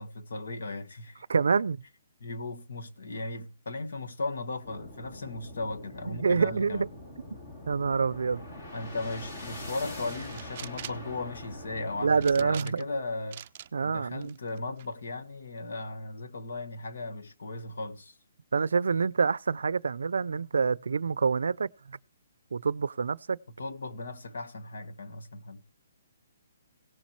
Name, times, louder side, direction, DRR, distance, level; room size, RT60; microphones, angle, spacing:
voice 1, 0.0-1.3 2.2-6.9 8.7-13.4 13.8-18.2 23.5-25.6, left 2 dB, 75° left, 1.5 m, -37 dB
voice 2, 1.3-1.8 6.1-6.9 7.7-8.4 12.0-12.9 13.7-14.4 18.5-22.0 22.5-23.4, right 5 dB, 90° right, 0.4 m, -27 dB
sound 1, 4.6-12.5, left 1 dB, 35° left, 2.9 m, -44 dB
sound 2, 10.1-11.1 12.2-13.0 13.3-13.7 14.2-14.9, right 10 dB, 30° right, 0.4 m, -43 dB
17.5 x 7.2 x 3.1 m
hypercardioid pair, 175°, 0 cm